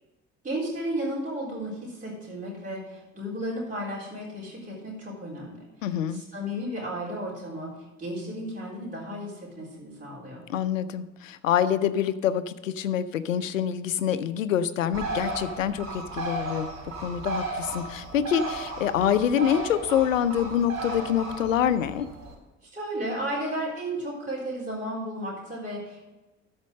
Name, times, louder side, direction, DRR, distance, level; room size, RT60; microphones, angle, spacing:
voice 1, 0.4-10.4 22.6-26.0, equal, 20° right, -7 dB, 3.9 m, -34 dB
voice 2, 5.8-6.2 10.5-16.7 17.0-22.1, left 9 dB, 80° left, 14 dB, 0.6 m, -26 dB
Bird, 14.9-22.3, right 2 dB, 40° right, 3.3 m, -35 dB
13.0 x 4.4 x 6.3 m, 1.1 s
figure-of-eight pair, 55°, 39 cm